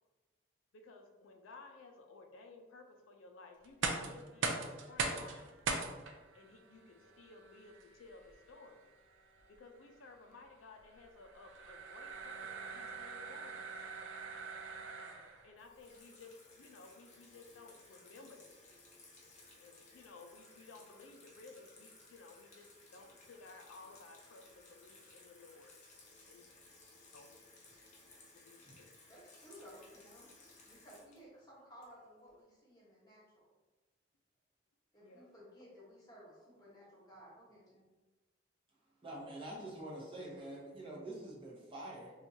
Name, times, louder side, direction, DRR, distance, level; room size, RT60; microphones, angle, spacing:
voice 1, 0.7-5.6 6.3-8.9 9.5-13.7 15.4-18.5 19.6-25.8 26.2-26.4 27.1-27.3 28.4-28.9 35.0-35.3, left 3 dB, 90° left, 3 dB, 0.4 m, -56 dB
sound 1, 3.6-15.5, right 4 dB, 75° right, 0.4 m, -42 dB
Water tap faucet / Sink (filling or washing), 15.6-32.3, left 2 dB, 35° left, 0.7 m, -60 dB
voice 2, 29.1-30.3 30.6-33.4 34.9-37.8, equal, 20° left, -6 dB, 1.1 m, -57 dB
voice 3, 39.0-42.1, right 1 dB, 25° right, -4 dB, 0.7 m, -46 dB
4.3 x 2.4 x 2.7 m, 1.2 s
head